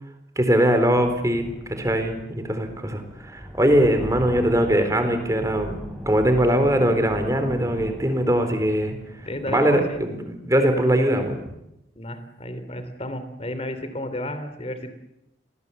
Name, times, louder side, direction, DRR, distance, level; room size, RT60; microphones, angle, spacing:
voice 1, 0.4-1.4 1.7-9.0 9.5-11.4, equal, 20° right, 7 dB, 4.0 m, -21 dB
sound 1, 0.9-10.0, equal, 5° left, 5.5 m, -38 dB
voice 2, 9.3-10.0 11.9-14.9, left 1 dB, 35° left, 11 dB, 3.2 m, -32 dB
28.5 x 19.5 x 8.3 m, 0.86 s
head